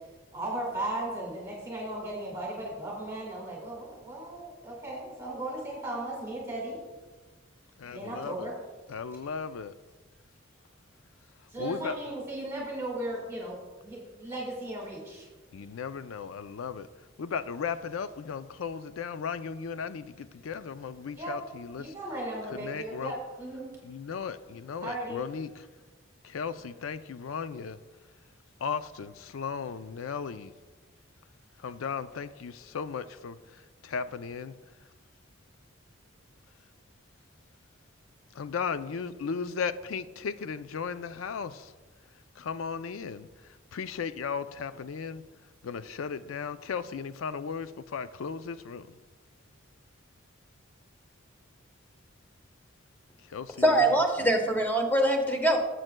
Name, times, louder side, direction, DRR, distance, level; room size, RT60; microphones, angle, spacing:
voice 1, 0.3-6.8 7.9-8.5 11.5-13.6 13.8-15.3 21.2-21.4 21.8-23.7 24.8-25.2, right 1 dB, 15° right, 1.7 m, -36 dB
voice 2, 7.8-8.5 8.9-9.7 11.6-11.9 15.5-16.9 17.2-21.9 22.5-23.1 23.8-25.6 26.2-27.8 28.6-30.5 31.6-33.4 33.8-34.5 38.4-41.7 42.4-43.3 43.7-45.2 45.6-48.8 53.3-53.8 54.2-54.3, left 6 dB, 85° left, 0.4 m, -36 dB
voice 3, 53.6-55.6, right 1 dB, 10° left, 1.1 m, -23 dB
16.5 x 7.7 x 2.2 m
head